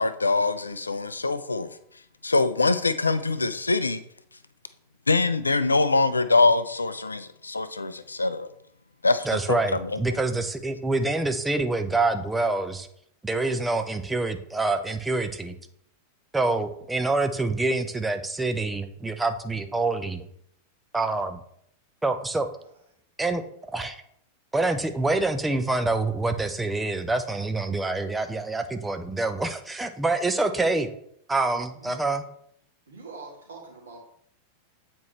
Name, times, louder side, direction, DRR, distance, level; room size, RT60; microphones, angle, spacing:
voice 1, 0.0-1.7 2.2-4.0 5.1-8.5 9.0-10.0, left 3 dB, 80° left, 13 dB, 0.4 m, -24 dB
voice 2, 9.3-12.9 13.2-15.6 16.3-20.3 20.9-21.4 22.0-22.5 23.2-23.4 23.7-24.0 24.5-30.9 31.3-32.3, right 3 dB, 10° right, 7 dB, 0.6 m, -26 dB
voice 3, 30.5-30.9 31.8-32.1 32.9-34.0, right 3 dB, 70° right, -2 dB, 2.1 m, -43 dB
8.2 x 4.3 x 3.1 m, 0.71 s
figure-of-eight pair, 90°, 0 cm